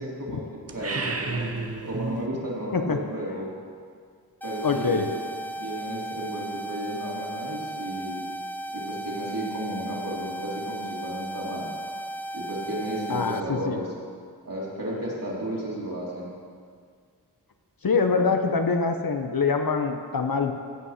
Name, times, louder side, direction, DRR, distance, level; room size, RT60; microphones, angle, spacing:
voice 1, 0.0-1.5 1.8-3.5 4.4-5.1 5.5-8.3 8.7-11.7 12.3-13.9 14.4-16.3, right 1 dB, 50° right, -5 dB, 3.3 m, -33 dB
sound 1, 0.7-2.3, right 3 dB, 35° right, 0.9 m, -31 dB
sound 2, 4.4-13.4, right 1 dB, 5° left, 0.4 m, -35 dB
voice 2, 4.6-5.1 13.1-13.8 17.8-20.5, left 4 dB, 55° left, 6 dB, 0.9 m, -24 dB
15.5 x 5.6 x 5.7 m, 2.1 s
wide cardioid pair, 50°, 41 cm